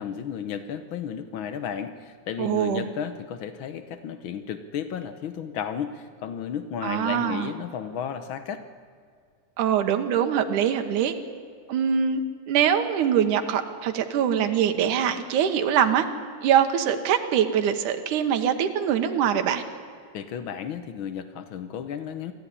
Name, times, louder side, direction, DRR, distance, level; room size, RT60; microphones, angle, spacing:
voice 1, 0.0-8.6 20.1-22.3, left 8 dB, 90° left, 11 dB, 1.1 m, -33 dB
voice 2, 2.4-2.8 6.8-7.5 9.6-11.1 11.7-12.2 12.5-16.0 16.4-19.6, right 8 dB, 80° right, 6 dB, 2.7 m, -23 dB
24.0 x 15.0 x 9.9 m, 2.1 s
omnidirectional pair, 3.6 m